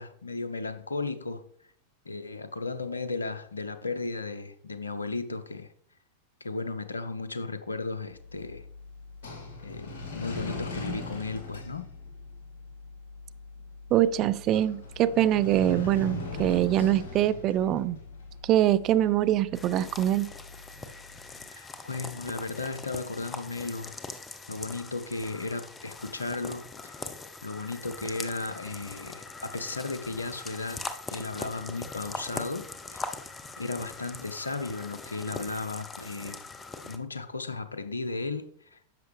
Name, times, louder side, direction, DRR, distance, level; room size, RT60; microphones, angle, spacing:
voice 1, 0.0-1.4 2.0-5.7 6.4-8.6 9.6-11.9 21.5-23.9 24.5-27.1 27.4-30.8 31.1-32.6 32.9-33.1 33.6-36.4 36.8-38.8, left 3 dB, 80° left, 0.7 m, -35 dB
sound 1, 8.1-21.2, left 3 dB, 55° left, 2.6 m, -41 dB
voice 2, 13.9-18.0 18.4-20.3, right 12 dB, 35° right, 0.4 m, -24 dB
sound 2, 19.5-37.0, left 3 dB, 15° left, 0.8 m, -41 dB
10.5 x 6.9 x 3.4 m
figure-of-eight pair, 90°, 0 cm